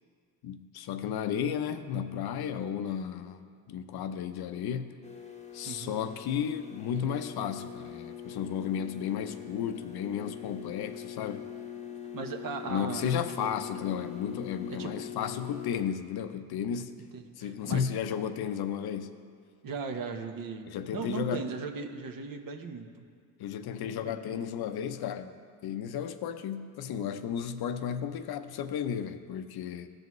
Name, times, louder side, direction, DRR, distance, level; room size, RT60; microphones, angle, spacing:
voice 1, 0.4-5.0 5.5-11.5 12.7-17.0 17.4-19.1 20.7-21.4 23.4-25.3 25.6-29.9, left 8 dB, 55° left, 10 dB, 0.6 m, -33 dB
buzz harmonic, 5.0-15.8, left 8 dB, 15° left, 0.9 m, -43 dB
voice 2, 12.1-13.1 13.4-13.5 14.7-15.0 17.1-17.9 19.6-20.7 20.9-23.0 24.0-24.2, right 4 dB, 50° right, 5 dB, 1.0 m, -37 dB
15.0 x 5.2 x 3.1 m, 2.1 s
supercardioid pair, 70°, 45 cm